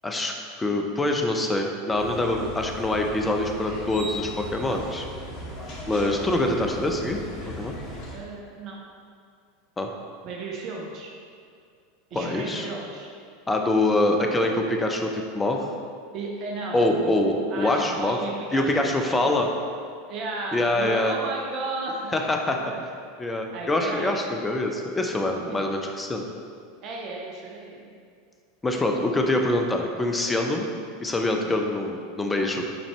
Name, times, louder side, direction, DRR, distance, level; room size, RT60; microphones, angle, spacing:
voice 1, 0.0-5.1 5.9-7.2 7.6-7.7 9.8-9.9 12.1-12.7 13.5-15.7 16.7-18.2 18.5-19.5 20.5-21.2 22.1-22.6 23.2-26.2 28.6-30.7 31.0-32.6, left 2 dB, 15° left, 2 dB, 0.8 m, -25 dB
sound 1, 1.9-8.2, equal, 45° left, 1.5 m, -37 dB
voice 2, 8.1-8.8 10.2-11.1 12.1-13.1 16.1-17.2 17.5-19.5 20.1-22.1 22.6-22.8 23.5-24.1 25.5-25.6 26.8-28.0 31.4-31.7, right 3 dB, 45° right, -1 dB, 0.9 m, -34 dB
8.7 x 4.2 x 3.3 m, 2.3 s
figure-of-eight pair, 80°, 0 cm